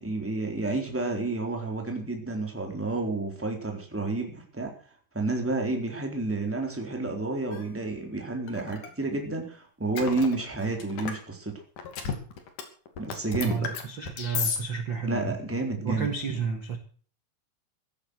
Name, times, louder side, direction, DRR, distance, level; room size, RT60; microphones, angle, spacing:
voice 1, 0.0-4.7 5.1-11.6 13.0-13.6 15.0-16.1, right 2 dB, 5° right, 2 dB, 3.4 m, -30 dB
sound 1, 7.5-7.6 8.5-8.9 9.9-11.2 11.8-12.6 12.9-14.6, left 6 dB, 55° left, 3.9 m, -32 dB
voice 2, 13.4-15.3 15.8-16.8, right 5 dB, 50° right, 6 dB, 1.5 m, -31 dB
15.5 x 12.5 x 6.5 m, 0.43 s
omnidirectional pair, 4.6 m